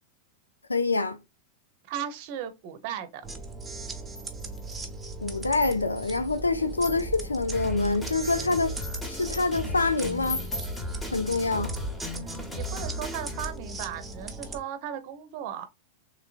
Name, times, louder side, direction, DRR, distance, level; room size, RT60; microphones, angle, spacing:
voice 1, 0.7-1.2 5.2-10.4 11.1-11.7, left 3 dB, 80° left, 0.4 m, -26 dB
voice 2, 1.9-3.2 12.1-15.7, right 9 dB, 45° right, 0.7 m, -36 dB
sound 1, 3.2-14.6, right 2 dB, 10° right, 0.8 m, -39 dB
sound 2, 4.2-4.9 5.4-6.1 6.7-7.3 7.9-9.6 10.2-10.8, left 3 dB, 55° left, 1.0 m, -39 dB
Drum kit, 7.5-13.5, left 1 dB, 10° left, 1.1 m, -36 dB
3.7 x 3.1 x 2.4 m
figure-of-eight pair, 90°, 0 cm